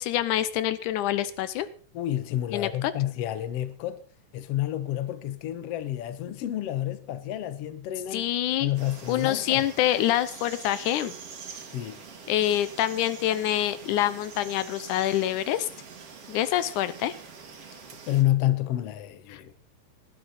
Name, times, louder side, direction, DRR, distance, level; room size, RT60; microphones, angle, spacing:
voice 1, 0.0-1.7 2.5-2.9 8.1-8.7 9.1-11.1 12.3-15.7 16.3-17.1 19.3-19.4, left 12 dB, 85° left, 2.3 m, -26 dB
voice 2, 1.9-4.0 4.3-8.3 8.6-9.7 11.7-12.0 18.1-19.5, left 13 dB, 60° left, 2.0 m, -29 dB
sound 1, 8.8-18.2, right 6 dB, 50° right, 2.9 m, -45 dB
19.5 x 11.5 x 4.2 m
omnidirectional pair, 3.5 m